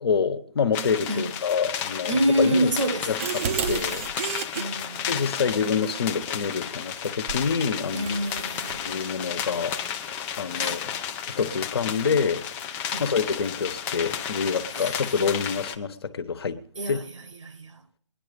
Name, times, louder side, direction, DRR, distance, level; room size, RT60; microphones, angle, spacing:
voice 1, 0.0-2.7 3.1-3.2 3.7-4.0 5.1-8.2 8.8-9.7 10.4-10.8 11.3-12.4 13.0-16.6 16.9-17.0, left 6 dB, 50° left, 1.4 m, -26 dB
sound 1, 0.7-15.8, left 8 dB, 10° left, 0.5 m, -33 dB
voice 2, 2.1-3.3 4.5-5.1 7.9-8.9 10.5-10.8 12.9-13.2 14.7-15.0 16.8-17.8, right 1 dB, 65° right, 1.4 m, -27 dB
sound 2, 2.8-4.6 7.3-7.5 8.1-8.8, right 7 dB, 25° right, 0.8 m, -31 dB
20.5 x 11.0 x 5.3 m
figure-of-eight pair, 155°, 17 cm